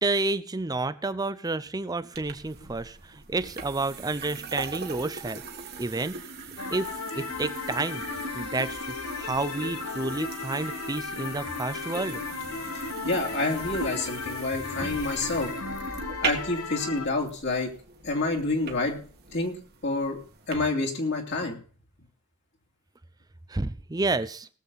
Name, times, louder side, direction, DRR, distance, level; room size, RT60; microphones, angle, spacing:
voice 1, 0.0-5.4 5.8-6.2 6.7-8.0 8.3-8.9 9.2-12.7 23.5-24.5, right 3 dB, 15° right, 14 dB, 0.5 m, -30 dB
sound 1, 2.1-20.5, right 4 dB, 45° right, 1.6 m, -39 dB
sound 2, 6.6-17.1, left 5 dB, 75° left, 1.1 m, -36 dB
voice 2, 12.7-15.5 16.2-17.7 18.0-19.0 19.3-19.6 19.8-20.2 20.5-21.6, left 2 dB, 50° left, 1 dB, 2.7 m, -28 dB
19.0 x 7.6 x 4.0 m, 0.42 s
head